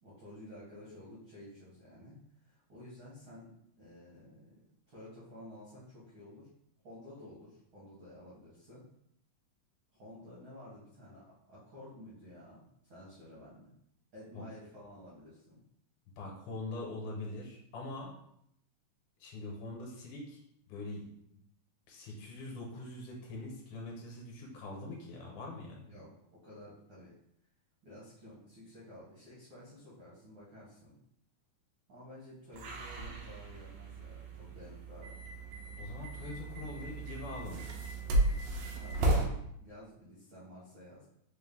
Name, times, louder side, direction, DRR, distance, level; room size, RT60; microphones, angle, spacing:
voice 1, 0.0-4.5 4.9-6.5 6.8-8.8 9.9-13.7 14.1-15.6 25.8-27.1 27.8-31.0 31.9-35.2 38.8-41.1, left 1 dB, 70° right, -8 dB, 1.1 m, -52 dB
voice 2, 16.2-18.1 19.2-20.4 20.7-21.0 21.9-25.9 35.8-37.7, left 2 dB, 75° left, -1 dB, 2.1 m, -43 dB
sound 1, 32.5-39.3, right 1 dB, 90° right, 1.6 m, -34 dB
5.0 x 2.1 x 3.5 m, 0.74 s
omnidirectional pair, 3.7 m